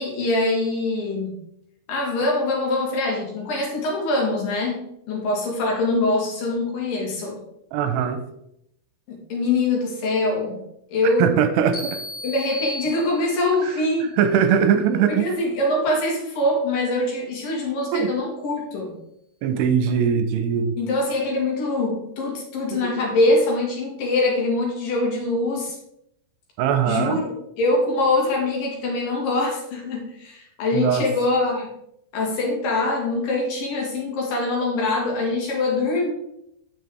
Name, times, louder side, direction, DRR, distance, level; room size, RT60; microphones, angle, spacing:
voice 1, 0.0-1.4 1.9-4.8 5.1-7.4 9.1-10.6 10.9-11.4 12.2-14.1 15.1-18.9 20.8-25.8 26.9-27.3 27.6-31.7 32.1-36.1, left 2 dB, 60° left, -1 dB, 3.2 m, -23 dB
voice 2, 7.7-8.2 11.2-12.0 13.6-13.7 14.2-15.3 17.9-18.1 19.4-20.8 22.7-22.9 26.6-27.2 30.7-31.0, right 7 dB, 90° right, 8 dB, 2.7 m, -21 dB
sound 1, 11.7-13.6, equal, 25° left, 1.9 m, -34 dB
8.2 x 7.1 x 3.3 m, 0.77 s
omnidirectional pair, 4.8 m